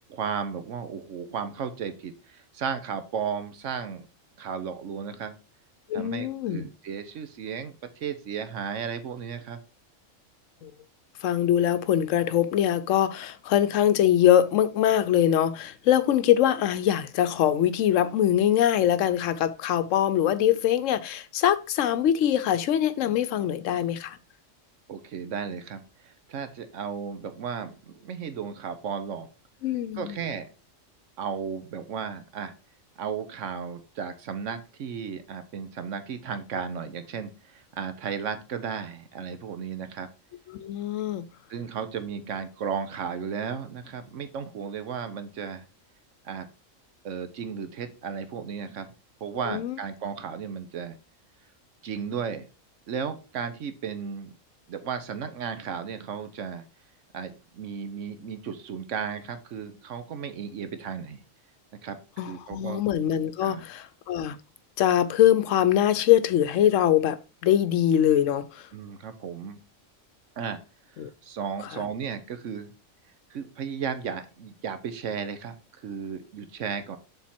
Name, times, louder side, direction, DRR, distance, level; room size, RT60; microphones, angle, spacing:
voice 1, 0.1-4.1 4.4-5.4 5.9-9.6 24.9-29.3 30.0-30.5 31.2-32.5 33.0-40.1 41.5-45.6 46.2-46.5 47.0-48.9 49.2-51.0 51.8-52.5 52.9-54.3 54.7-56.7 57.1-61.2 61.8-62.0 62.3-62.8 63.4-63.6 68.7-69.6 70.4-70.6 71.2-72.7 73.3-77.0, right 6 dB, 70° right, 1.1 m, -34 dB
voice 2, 5.9-6.7 10.6-10.7 11.2-24.2 29.6-30.2 40.5-41.2 49.5-49.8 62.2-64.4 64.8-68.7 71.0-71.1 71.7-71.8, left 11 dB, 75° left, 0.9 m, -23 dB
7.2 x 3.7 x 4.3 m
omnidirectional pair, 1.3 m